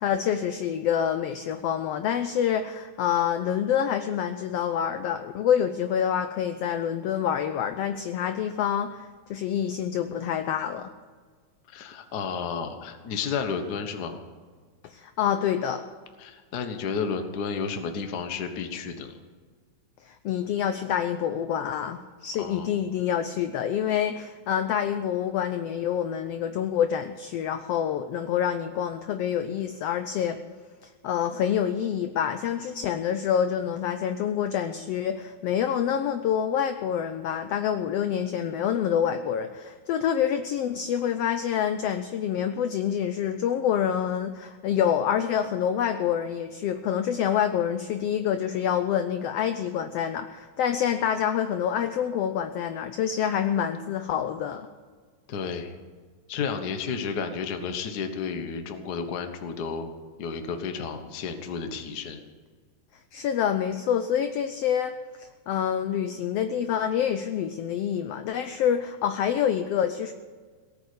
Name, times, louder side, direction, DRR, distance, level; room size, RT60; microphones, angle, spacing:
voice 1, 0.0-10.9 14.8-15.8 20.1-30.4 30.8-54.7 63.1-64.9 65.2-70.1, left 9 dB, 80° left, 8 dB, 1.4 m, -27 dB
voice 2, 11.7-14.2 16.2-19.1 22.4-22.7 55.3-55.8 56.3-59.9 60.2-62.2, left 5 dB, 55° left, 6 dB, 1.1 m, -32 dB
18.0 x 8.2 x 8.4 m, 1.5 s
omnidirectional pair, 3.6 m